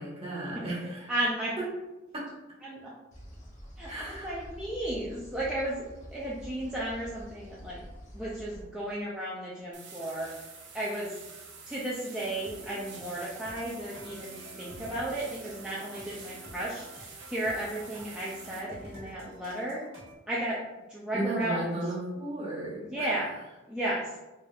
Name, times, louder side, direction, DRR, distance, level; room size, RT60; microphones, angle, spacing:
voice 1, 0.0-1.1 2.1-2.3 3.9-4.4 21.1-23.1, right 1 dB, 30° right, -5 dB, 0.9 m, -34 dB
voice 2, 1.1-1.6 2.6-2.9 3.8-5.9 6.1-7.8 8.1-10.3 10.7-11.1 11.7-16.9 17.3-19.8 20.3-20.6 20.9-21.6 22.8-23.4 23.7-24.2, right 1 dB, 5° right, -8 dB, 0.4 m, -34 dB
sound 1, 3.1-8.6, equal, 40° left, 0.8 m, -47 dB
sound 2, 9.7-18.6, right 5 dB, 65° right, 0.6 m, -48 dB
sound 3, 12.2-20.2, right 1 dB, 90° right, 1.3 m, -49 dB
3.4 x 2.5 x 2.3 m, 1.1 s
head